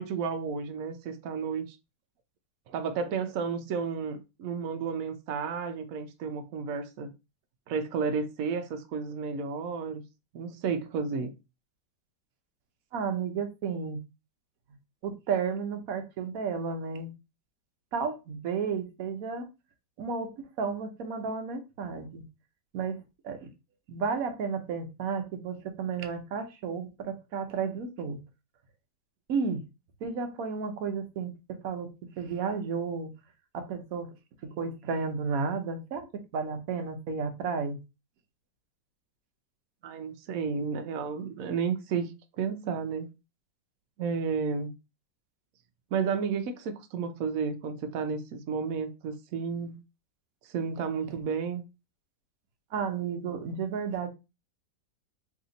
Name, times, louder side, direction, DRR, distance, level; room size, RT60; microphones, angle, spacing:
voice 1, 0.0-1.8 2.7-7.1 7.7-10.0 10.3-11.3 39.8-43.1 44.0-44.7 45.9-49.8 50.4-51.6, right 5 dB, 85° right, 0.7 m, -32 dB
voice 2, 12.9-14.0 15.0-17.1 17.9-19.5 20.0-20.3 20.6-22.2 22.7-23.5 23.9-28.2 29.3-29.6 30.0-33.1 33.5-34.1 34.4-36.1 36.3-37.8 52.7-54.1, right 5 dB, 60° right, 1.0 m, -32 dB
3.3 x 2.7 x 3.8 m
omnidirectional pair, 2.0 m